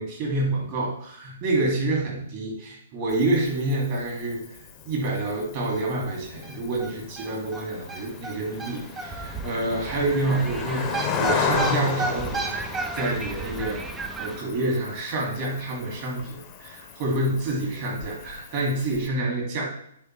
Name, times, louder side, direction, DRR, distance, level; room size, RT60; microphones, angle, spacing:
voice 1, 0.0-4.4 4.9-12.5 12.9-13.8 14.2-19.6, right 2 dB, 40° right, -2 dB, 2.4 m, -27 dB
Cricket, 3.1-19.1, left 6 dB, 30° left, 0.8 m, -35 dB
sound 1, 5.7-5.8 6.1-6.2 6.4-14.4, right 3 dB, 15° right, 0.5 m, -33 dB
9.1 x 3.5 x 3.3 m, 0.73 s
figure-of-eight pair, 120°, 0 cm